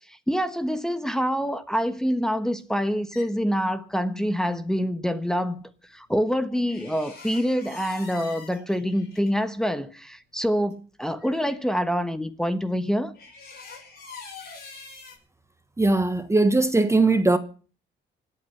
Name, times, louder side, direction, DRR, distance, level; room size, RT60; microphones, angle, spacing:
voice 1, 0.1-5.6 5.9-13.1, equal, 5° left, 1.3 m, -26 dB
sound 1, 2.6-3.3 6.6-9.3 10.4-10.5 10.7-10.8 11.2-11.6 13.1-15.2, left 4 dB, 50° left, 6.5 m, -44 dB
voice 2, 15.8-17.4, right 2 dB, 15° right, 1.2 m, -20 dB
25.0 x 8.7 x 5.8 m
cardioid pair, 90°, 20 cm